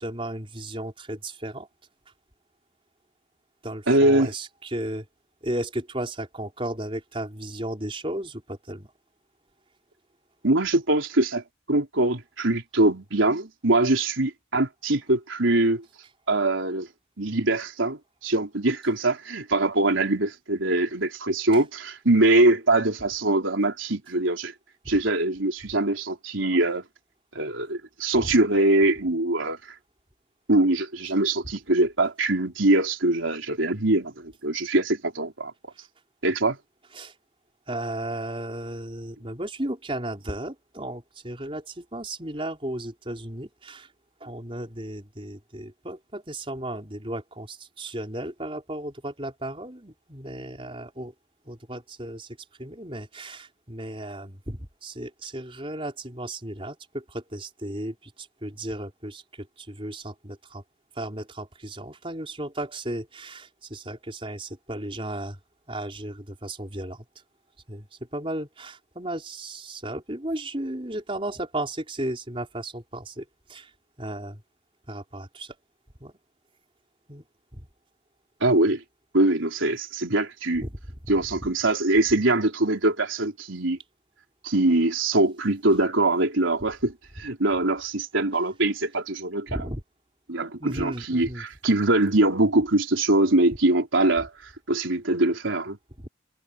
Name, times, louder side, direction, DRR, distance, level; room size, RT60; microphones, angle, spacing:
voice 1, 0.0-1.7 3.6-5.0 5.4-8.9 21.5-21.6 37.0-37.1 37.7-43.9 44.2-51.1 51.4-60.6 60.9-65.4 65.7-67.0 67.7-67.9 68.1-73.7 74.0-74.4 74.9-75.5 76.0-76.1 77.1-77.2 77.5-77.7 80.6-80.7 89.5-89.8 90.6-91.4 96.0-96.1, right 1 dB, 25° right, 4.8 m, -34 dB
voice 2, 3.9-4.3 10.4-11.4 11.7-15.8 16.3-16.9 17.2-24.5 24.9-26.8 27.3-29.6 30.5-35.5 36.2-36.6 78.4-78.8 79.1-80.6 81.1-83.8 84.4-89.5 90.3-95.8, right 2 dB, 85° right, 3.9 m, -23 dB
head